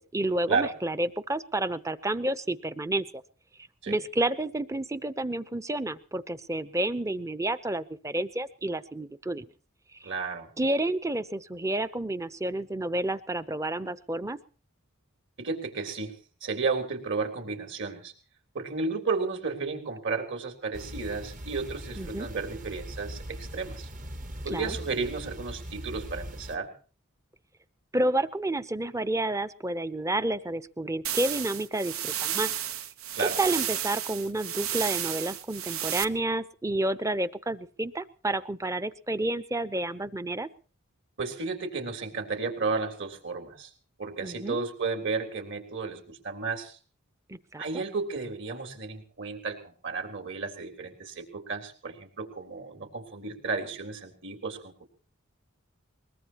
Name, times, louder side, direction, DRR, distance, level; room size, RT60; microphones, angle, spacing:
voice 1, 0.1-3.1 3.9-9.5 10.0-10.1 10.6-14.4 22.0-22.3 24.5-24.8 27.9-32.5 33.4-40.5 44.2-44.6 47.3-47.8, right 1 dB, 15° right, 13 dB, 0.7 m, -30 dB
voice 2, 10.0-10.5 15.4-16.2 16.4-18.1 18.5-23.9 24.4-26.7 33.1-33.4 41.2-43.7 44.0-46.8 47.6-54.9, right 4 dB, 60° right, 4 dB, 3.6 m, -33 dB
sound 1, 20.7-26.6, equal, 40° right, 1.2 m, -40 dB
sound 2, 31.0-36.0, right 10 dB, 80° right, 1.1 m, -32 dB
22.5 x 21.0 x 3.0 m, 0.39 s
head